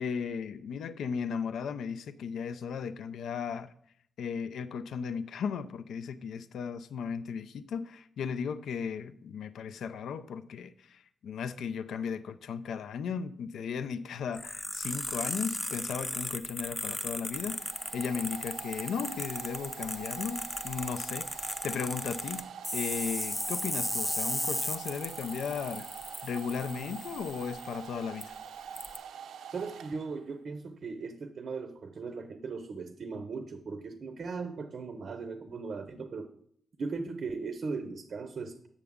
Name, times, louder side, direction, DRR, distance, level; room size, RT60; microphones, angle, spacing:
voice 1, 0.0-3.7 4.2-17.7 17.9-25.9 26.2-28.4, left 6 dB, 75° left, 0.4 m, -36 dB
sound 1, 14.3-27.7 28.2-28.3 28.8-29.0, left 1 dB, 5° left, 0.4 m, -36 dB
Domestic sounds home sounds, 16.7-30.4, right 8 dB, 85° right, 0.5 m, -45 dB
voice 2, 29.5-36.3 36.8-38.7, right 4 dB, 45° right, 0.6 m, -38 dB
8.0 x 6.9 x 3.6 m
wide cardioid pair, 165°, 0 cm